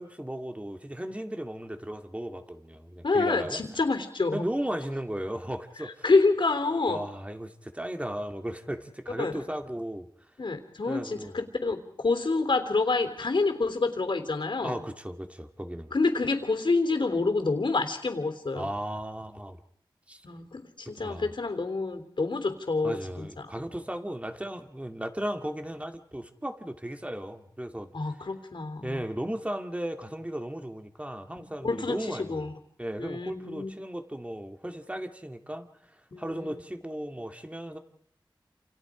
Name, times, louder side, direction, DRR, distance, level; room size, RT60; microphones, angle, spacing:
voice 1, 0.0-3.6 4.3-6.1 6.9-10.1 10.9-11.3 14.6-15.9 18.5-19.6 20.1-20.2 21.0-21.3 22.8-27.9 28.8-32.4 32.8-37.8, right 1 dB, 15° right, 6 dB, 2.2 m, -36 dB
voice 2, 3.0-4.5 6.0-7.0 9.2-9.3 10.4-14.8 15.9-18.7 20.2-23.3 27.9-29.0 31.4-32.5 33.0-33.7 36.1-36.6, left 3 dB, 70° left, 7 dB, 3.4 m, -27 dB
28.5 x 28.0 x 5.1 m, 0.67 s
wide cardioid pair, 60°, 9 cm